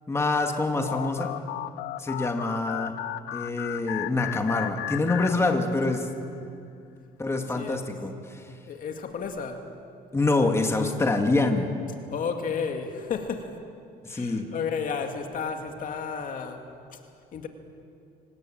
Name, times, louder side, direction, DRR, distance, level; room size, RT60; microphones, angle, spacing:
voice 1, 0.1-1.3 2.0-2.9 3.3-6.1 7.2-8.4 10.1-11.7 14.0-14.5, left 2 dB, 15° left, 4 dB, 2.2 m, -26 dB
sound 1, 0.9-6.0, left 15 dB, 85° left, 0.6 m, -35 dB
voice 2, 8.7-9.7 12.1-13.6 14.1-16.6 16.9-17.0 17.3-17.5, left 6 dB, 55° left, 5 dB, 2.2 m, -32 dB
26.0 x 18.0 x 8.9 m, 2.5 s
cardioid pair, 110°, 17 cm